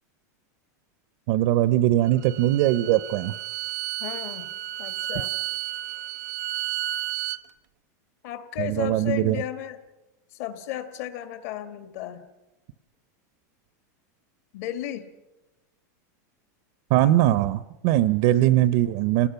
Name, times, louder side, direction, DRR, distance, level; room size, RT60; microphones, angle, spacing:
voice 1, 1.3-3.3 8.6-9.4 16.9-19.3, right 14 dB, 50° right, 16 dB, 0.7 m, -21 dB
Bowed string instrument, 2.0-7.4, right 14 dB, 75° right, 0.9 m, -32 dB
voice 2, 4.0-4.5 4.8-5.3 8.2-9.8 10.3-12.3 14.5-15.1 18.3-18.7, left 13 dB, 60° left, 9 dB, 2.0 m, -34 dB
29.0 x 19.0 x 5.8 m, 1.0 s
supercardioid pair, 160°, 10 cm